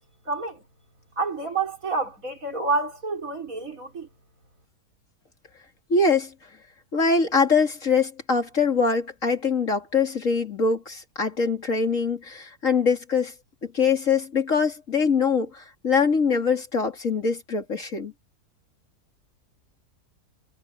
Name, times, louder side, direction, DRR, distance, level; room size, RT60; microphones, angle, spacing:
voice 1, 0.3-0.6 1.2-4.1, right 3 dB, 55° right, 4.9 m, -28 dB
voice 2, 5.9-6.3 6.9-13.3 13.6-18.1, left 5 dB, 50° left, 3.0 m, -23 dB
omnidirectional pair, 1.7 m